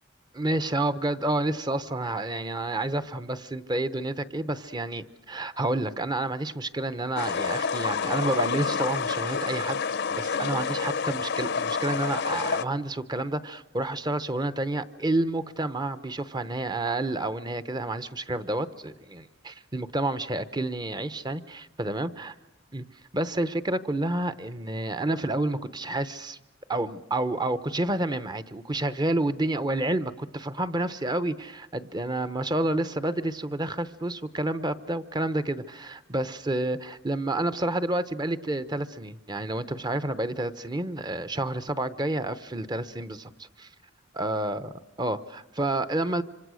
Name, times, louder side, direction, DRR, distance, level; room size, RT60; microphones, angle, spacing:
voice 1, 0.3-9.8 10.1-22.3 22.7-22.8 23.1-26.4 26.7-43.7 44.1-44.7 45.0-46.2, right 2 dB, 20° right, 13 dB, 0.8 m, -29 dB
sound 1, 7.2-12.6, left 5 dB, 60° left, 0.7 m, -28 dB
26.5 x 25.5 x 6.4 m, 1.1 s
head